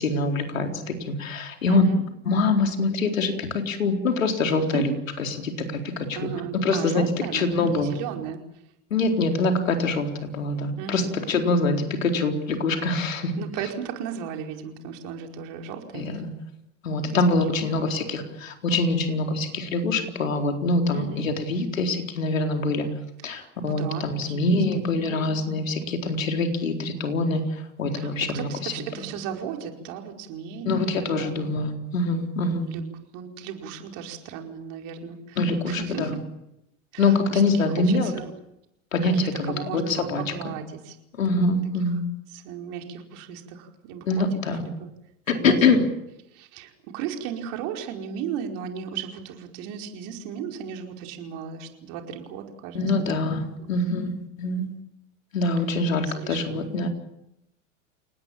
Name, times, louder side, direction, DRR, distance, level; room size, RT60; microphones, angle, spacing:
voice 1, 0.0-1.9 2.3-4.9 5.2-6.2 6.6-7.0 7.3-8.0 8.9-13.3 15.9-16.3 16.8-22.9 23.2-28.9 30.7-32.7 35.4-36.1 37.0-38.1 38.9-40.2 41.2-42.0 44.1-44.6 45.3-45.8 52.7-54.1 54.4-54.7 55.3-56.9, left 3 dB, 80° left, 4 dB, 4.3 m, -24 dB
voice 2, 1.7-2.0 4.7-5.0 6.1-8.4 10.8-11.2 13.4-16.2 17.0-17.2 17.5-17.8 20.9-21.2 23.2-24.6 25.1-25.3 28.0-31.5 32.7-35.4 35.7-36.1 36.9-38.3 39.0-41.0 42.3-44.3 44.6-44.7 45.3-45.6 46.3-53.1 53.6-54.0 56.1-56.6, right 8 dB, 50° right, 3 dB, 4.9 m, -36 dB
30.0 x 19.0 x 7.4 m, 0.85 s
hypercardioid pair, 90°, 39 cm